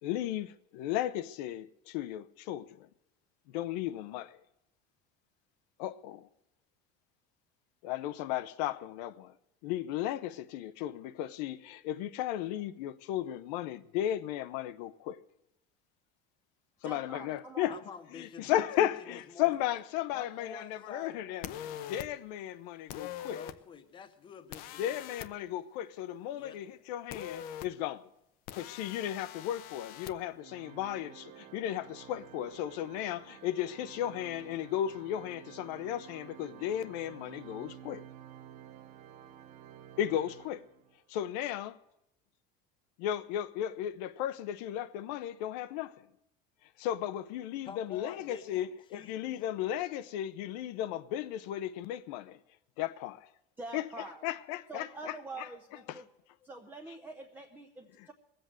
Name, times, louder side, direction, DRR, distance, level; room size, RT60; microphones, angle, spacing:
voice 1, 0.0-2.9 3.5-4.4 5.8-6.3 7.8-9.3 9.6-15.2 16.8-17.7 18.1-23.4 24.8-28.1 28.5-38.0 40.0-40.6 41.1-41.8 43.0-45.9 46.8-52.4 52.8-53.3 53.7-55.5 55.9-56.0 58.0-58.1, left 12 dB, 80° left, 0.9 m, -35 dB
voice 2, 16.8-17.8 53.6-54.2 54.7-56.1 56.4-58.1, right 2 dB, 10° right, 0.6 m, -45 dB
voice 3, 17.7-19.6 20.1-21.2 23.3-24.8 26.3-26.6 47.6-49.2, left 6 dB, 25° left, 1.0 m, -48 dB
sound 1, 21.4-22.1 22.9-23.6 24.5-25.3 27.1-27.7 28.5-30.1, left 10 dB, 45° left, 0.7 m, -42 dB
Organ, 30.4-41.0, right 10 dB, 40° right, 0.8 m, -52 dB
20.0 x 7.9 x 7.6 m
cardioid pair, 180°, 21 cm